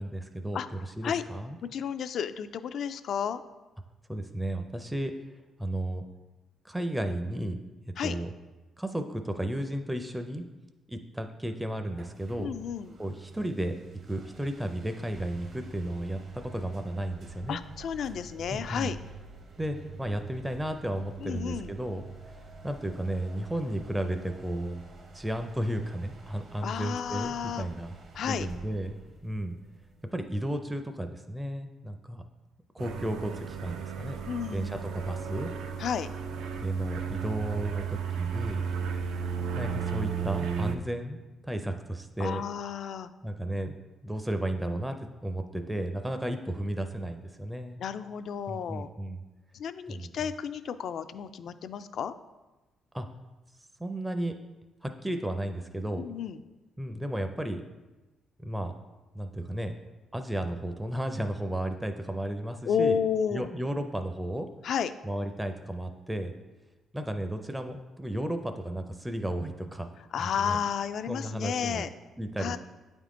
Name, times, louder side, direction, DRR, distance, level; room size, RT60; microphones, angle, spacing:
voice 1, 0.0-1.6 4.1-5.1 5.6-6.0 6.6-7.6 8.0-8.3 8.8-10.4 10.9-12.5 13.0-13.7 14.1-16.2 16.5-17.6 18.5-18.9 19.6-22.0 22.6-24.8 25.1-27.9 28.3-28.9 29.2-29.6 30.1-32.2 32.7-34.2 34.5-35.5 36.5-38.6 39.5-41.2 41.5-42.4 43.2-43.7 44.0-45.0 45.2-47.8 48.5-49.2 49.9-50.1 52.9-53.1 53.8-54.3 54.8-56.0 56.8-57.6 58.4-58.7 59.1-59.7 60.1-63.0 63.3-64.5 65.0-66.3 66.9-69.9 70.4-70.6 71.1-71.9 72.2-72.6, right 1 dB, 10° right, 6 dB, 0.4 m, -33 dB
voice 2, 0.5-1.2 1.6-3.4 8.0-8.2 12.4-12.9 17.5-19.0 21.2-21.7 26.6-27.7 28.1-28.5 34.3-34.8 35.8-36.1 42.2-43.1 47.8-48.9 49.5-52.2 56.0-56.4 62.7-63.5 64.6-64.9 70.1-71.9 72.4-72.6, left 7 dB, 65° left, 12 dB, 0.3 m, -32 dB
sound 1, 11.9-30.4, right 3 dB, 55° right, 0.8 m, -48 dB
sound 2, 32.8-40.8, right 7 dB, 85° right, 0.5 m, -34 dB
8.9 x 3.5 x 3.7 m, 1.1 s
cardioid pair, 90°, 0 cm